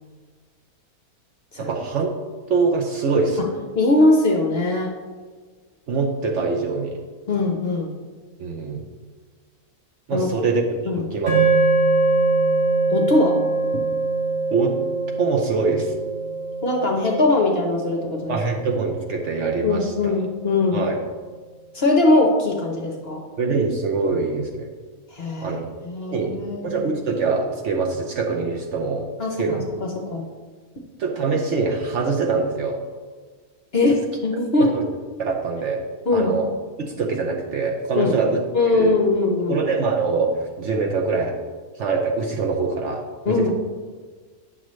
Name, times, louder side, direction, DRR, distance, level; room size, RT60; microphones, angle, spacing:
voice 1, 1.6-2.1 2.5-3.5 5.9-7.0 8.4-8.9 10.1-11.4 14.5-14.8 15.2-15.9 18.3-20.1 20.7-21.0 23.4-24.7 25.4-25.8 26.1-29.1 29.4-29.7 30.0-30.2 31.0-32.8 34.6-34.9 35.2-35.8 36.1-36.5 36.8-38.4 38.7-39.0 39.5-40.3 40.6-41.3 41.8-43.5, right 4 dB, 60° right, 2 dB, 0.9 m, -24 dB
voice 2, 3.7-4.9 7.3-7.9 10.1-10.3 10.9-11.1 12.9-13.4 16.6-18.4 19.6-20.8 21.7-23.2 25.1-26.8 29.2-30.3 33.7-34.7 36.1-36.3 38.0-38.1 38.5-39.6 43.3-43.5, left 2 dB, 50° left, 1 dB, 0.8 m, -21 dB
sound 1, 11.3-19.6, right 3 dB, 80° right, 3.1 m, -23 dB
8.7 x 6.0 x 3.1 m, 1.5 s
omnidirectional pair, 1.6 m